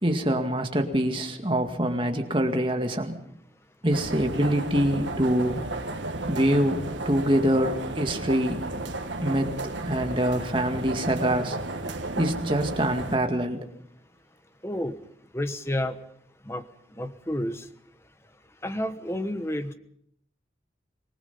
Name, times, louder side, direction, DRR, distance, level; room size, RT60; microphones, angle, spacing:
voice 1, 0.0-3.2 3.8-5.6 6.3-8.8 9.2-9.5 9.9-11.6 12.2-13.7, equal, 25° right, 5 dB, 2.1 m, -25 dB
sound 1, 3.9-13.2, right 2 dB, 80° right, 1.8 m, -33 dB
voice 2, 14.6-15.0 15.3-16.0 16.5-16.6 17.0-17.7 18.6-19.7, left 1 dB, 15° left, 10 dB, 1.2 m, -30 dB
26.0 x 20.0 x 5.6 m, 0.68 s
head